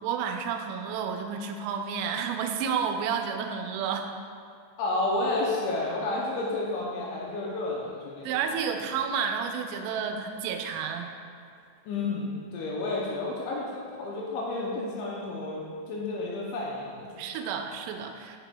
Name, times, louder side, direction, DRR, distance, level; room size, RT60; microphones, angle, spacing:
voice 1, 0.0-4.1 8.2-11.1 17.2-18.4, right 6 dB, 85° right, 5 dB, 3.1 m, -31 dB
voice 2, 4.8-8.3 11.9-17.2, left 2 dB, 80° left, -4 dB, 2.8 m, -31 dB
7.4 x 6.8 x 2.2 m, 2.5 s
omnidirectional pair, 5.8 m